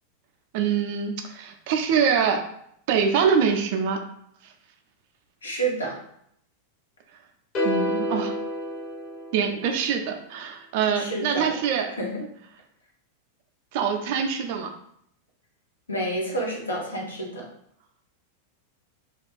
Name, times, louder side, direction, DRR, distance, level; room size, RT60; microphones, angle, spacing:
voice 1, 0.5-2.4 2.9-4.0 7.6-8.3 9.3-11.9 13.7-14.7, right 7 dB, 50° right, 5 dB, 0.4 m, -24 dB
voice 2, 5.4-6.0 10.9-11.6 12.0-12.2 15.9-17.4, right 2 dB, 75° left, -2 dB, 0.8 m, -29 dB
sound 1, 7.5-9.9, left 1 dB, 40° left, 1.1 m, -28 dB
2.4 x 2.3 x 3.5 m, 0.71 s
figure-of-eight pair, 90°, 0 cm